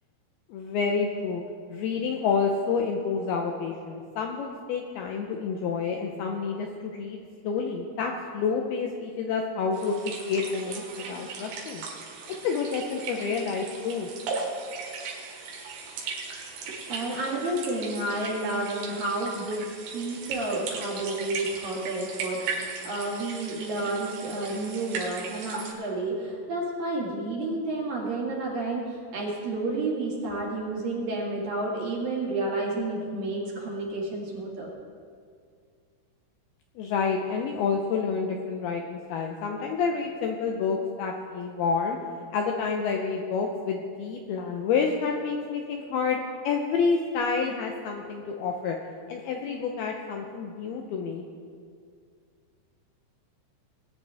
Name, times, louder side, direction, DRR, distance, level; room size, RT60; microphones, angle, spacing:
voice 1, 0.5-1.4 1.7-11.9 12.4-14.1 36.8-42.0 42.3-48.8 49.1-51.2, left 5 dB, 80° left, 1 dB, 2.3 m, -29 dB
sound 1, 9.7-25.7, right 4 dB, 90° right, 4.2 m, -37 dB
voice 2, 16.7-34.7, right 2 dB, 55° right, -3 dB, 3.4 m, -31 dB
21.0 x 9.9 x 3.5 m, 2.1 s
omnidirectional pair, 5.2 m